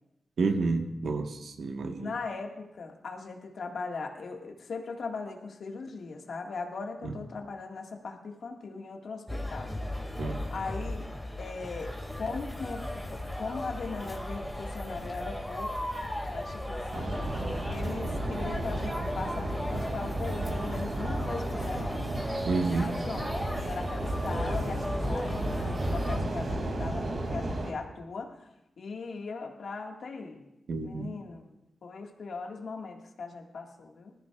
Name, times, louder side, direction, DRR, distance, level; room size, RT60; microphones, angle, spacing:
voice 1, 0.4-2.1 7.0-7.1 10.2-10.4 22.4-23.0 30.7-31.2, right 4 dB, 80° right, 4 dB, 1.3 m, -30 dB
voice 2, 2.0-9.7 10.5-11.1 11.4-15.9 16.3-17.3 17.7-22.2 22.8-28.5 28.8-30.5 30.8-31.4 31.8-34.1, left 4 dB, 75° left, 1 dB, 1.7 m, -39 dB
sound 1, 9.3-26.2, left 1 dB, ahead, 2.1 m, -36 dB
sound 2, 12.0-20.7, left 2 dB, 60° left, 4.0 m, -47 dB
sound 3, 16.9-27.7, right 1 dB, 60° right, 2.4 m, -33 dB
20.0 x 14.0 x 2.4 m, 0.90 s
cardioid pair, 65°, 0 cm